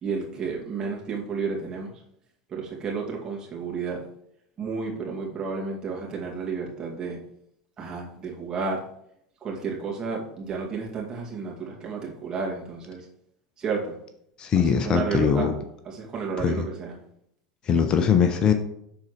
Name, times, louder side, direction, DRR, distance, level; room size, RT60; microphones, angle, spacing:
voice 1, 0.0-2.0 2.5-4.0 4.6-7.2 7.8-8.8 9.4-13.1 13.6-14.0 14.6-15.5 15.8-17.0, right 5 dB, 30° right, -2 dB, 2.2 m, -32 dB
voice 2, 14.4-15.5 16.4-16.7 17.7-18.5, left 7 dB, 35° left, 8 dB, 0.7 m, -21 dB
12.0 x 4.1 x 3.1 m, 0.74 s
figure-of-eight pair, 80°, 2 cm